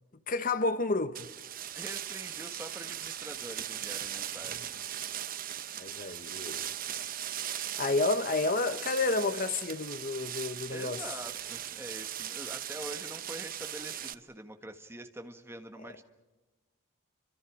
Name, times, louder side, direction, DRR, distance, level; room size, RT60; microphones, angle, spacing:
voice 1, 0.3-1.3 5.8-7.1 7.5-11.0, left 3 dB, 40° left, 1.0 m, -31 dB
sound 1, 1.1-14.1, right 11 dB, 40° right, 0.7 m, -39 dB
voice 2, 1.7-4.9 10.7-16.0, right 1 dB, 10° right, 1.5 m, -45 dB
30.0 x 25.5 x 5.0 m
head